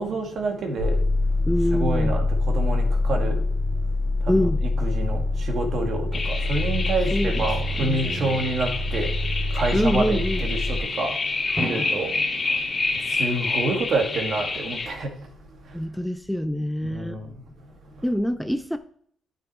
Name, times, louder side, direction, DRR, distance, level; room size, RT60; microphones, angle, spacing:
voice 1, 0.0-12.6 12.9-15.8 16.8-17.4, right 2 dB, 60° right, 2.0 m, -29 dB
sound 1, 0.8-10.8, left 2 dB, 80° right, 2.7 m, -25 dB
voice 2, 1.5-2.2 4.3-4.6 7.1-7.5 7.8-8.4 9.7-10.4 11.8-11.9 15.7-17.2 18.0-18.8, equal, ahead, 0.5 m, -25 dB
sound 2, 6.1-14.9, left 3 dB, 25° left, 2.9 m, -29 dB
Drum, 11.6-14.3, equal, 15° right, 1.4 m, -37 dB
9.2 x 6.5 x 4.4 m
cardioid pair, 90°, 0 cm